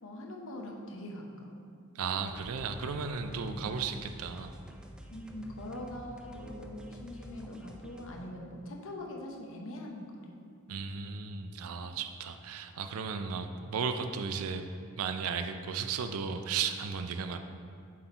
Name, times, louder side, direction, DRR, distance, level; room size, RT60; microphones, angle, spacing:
voice 1, 0.0-1.6 3.4-3.8 5.1-10.3, left 1 dB, 65° left, 0 dB, 0.9 m, -43 dB
voice 2, 1.9-4.6 10.7-14.7 15.0-17.4, right 6 dB, 75° right, 8 dB, 0.4 m, -35 dB
sound 1, 2.3-8.3, right 1 dB, 5° right, 0.4 m, -49 dB
7.5 x 4.2 x 4.4 m, 2.3 s
head